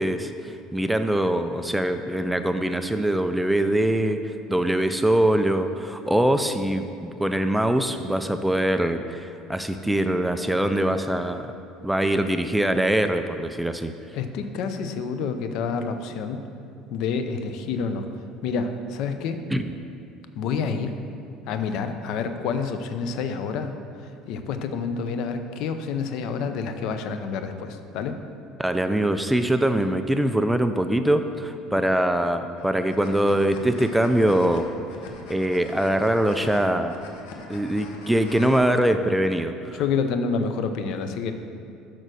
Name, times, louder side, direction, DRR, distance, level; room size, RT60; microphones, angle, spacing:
voice 1, 0.0-11.4 11.8-13.9 19.5-19.7 28.6-34.7 35.3-36.9 37.5-39.8, right 1 dB, 5° right, 8 dB, 0.3 m, -23 dB
voice 2, 14.1-16.4 16.9-18.1 18.4-19.4 20.4-20.9 21.5-28.1 39.7-41.3, left 5 dB, 60° left, 8 dB, 0.6 m, -28 dB
sound 1, 32.6-38.6, left 3 dB, 85° left, 1.0 m, -42 dB
6.7 x 6.0 x 6.2 m, 2.6 s
cardioid pair, 140°, 0 cm